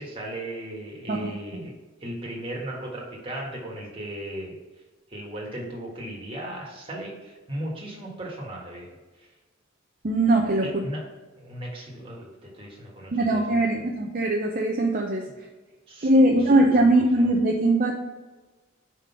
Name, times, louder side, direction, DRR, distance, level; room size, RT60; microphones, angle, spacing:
voice 1, 0.0-1.7 2.0-4.6 5.1-8.9 10.6-11.1 11.4-13.7 15.9-16.5 17.2-17.3, right 1 dB, 25° right, -3 dB, 1.5 m, -36 dB
voice 2, 10.0-10.8 13.1-15.3 16.0-17.9, right 1 dB, 40° right, 1 dB, 0.6 m, -21 dB
5.1 x 3.8 x 5.5 m, 1.2 s
head